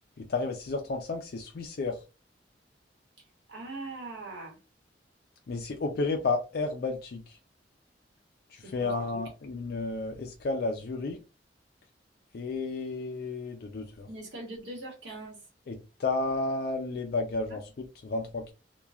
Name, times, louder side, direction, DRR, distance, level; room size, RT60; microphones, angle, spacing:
voice 1, 0.2-2.0 5.5-7.4 8.5-11.2 12.3-14.1 15.7-18.5, left 3 dB, 60° left, 0.4 m, -32 dB
voice 2, 3.5-4.6 8.6-9.2 14.0-15.4 17.5-17.6, right 2 dB, 85° right, 1.2 m, -41 dB
2.9 x 2.3 x 2.3 m
head